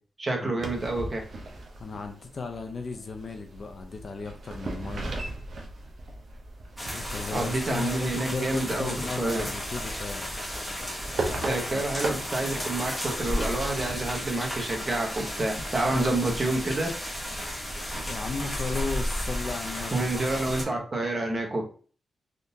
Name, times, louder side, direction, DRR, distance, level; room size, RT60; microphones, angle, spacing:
voice 1, 0.2-1.2 7.3-9.5 11.4-16.9 19.9-21.6, right 2 dB, 30° right, 0 dB, 0.8 m, -28 dB
sound 1, 0.6-18.5, right 2 dB, 55° right, 0.6 m, -40 dB
voice 2, 1.8-5.1 6.9-10.4 11.3-11.9 15.9-16.3 18.1-20.0, left 4 dB, 40° left, 5 dB, 0.4 m, -35 dB
sound 2, 6.8-20.6, equal, 10° left, 0.9 m, -34 dB
3.6 x 2.5 x 2.6 m, 0.39 s
wide cardioid pair, 160°, 0 cm